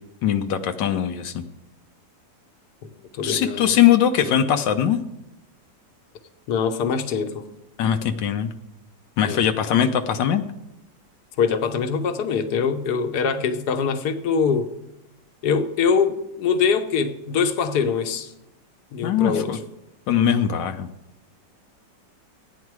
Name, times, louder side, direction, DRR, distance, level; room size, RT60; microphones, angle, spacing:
voice 1, 0.2-1.4 3.2-5.0 7.8-8.5 9.2-10.4 19.0-19.6 20.1-20.9, left 9 dB, 85° left, 6 dB, 1.4 m, -21 dB
voice 2, 3.1-3.7 6.5-7.4 9.2-9.4 11.4-14.7 15.4-18.3 18.9-19.5, left 6 dB, 65° left, 8 dB, 1.4 m, -23 dB
15.0 x 9.4 x 4.7 m, 0.90 s
omnidirectional pair, 1.9 m